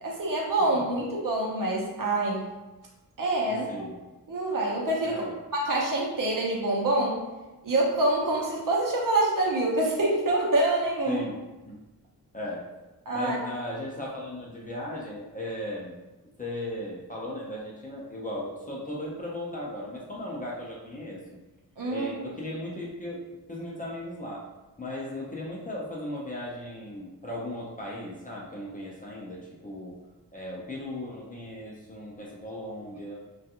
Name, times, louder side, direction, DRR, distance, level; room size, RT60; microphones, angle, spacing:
voice 1, 0.0-2.4 3.2-3.9 4.3-5.3 5.6-7.2 7.6-11.2 13.1-13.4 21.8-22.2, right 2 dB, 60° right, -2 dB, 0.7 m, -26 dB
voice 2, 0.6-1.0 3.4-3.9 5.0-5.3 11.1-11.4 11.7-11.8 12.3-12.7 13.1-16.0 16.4-21.2 21.9-23.2 23.5-24.5 24.8-30.0 30.3-33.2, left 1 dB, 25° left, -4 dB, 0.4 m, -37 dB
2.4 x 2.3 x 2.7 m, 1.1 s
wide cardioid pair, 135°, 37 cm